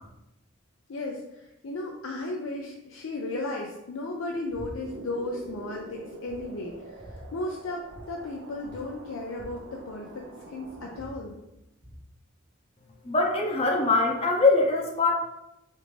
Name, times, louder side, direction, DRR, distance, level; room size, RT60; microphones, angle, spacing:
voice 1, 0.9-11.4, left 2 dB, 75° left, 0 dB, 0.5 m, -35 dB
sound 1, 4.5-4.7 5.0-5.5 5.9-6.0 6.3-7.2 7.9-8.1 8.3-8.4 8.6-10.3 10.6-12.0, equal, 25° right, 0.9 m, -47 dB
sound 2, 4.8-11.0, right 2 dB, 60° right, 0.5 m, -45 dB
voice 2, 13.0-15.1, left 3 dB, 30° left, 0 dB, 0.6 m, -22 dB
5.2 x 2.5 x 3.2 m, 0.88 s
head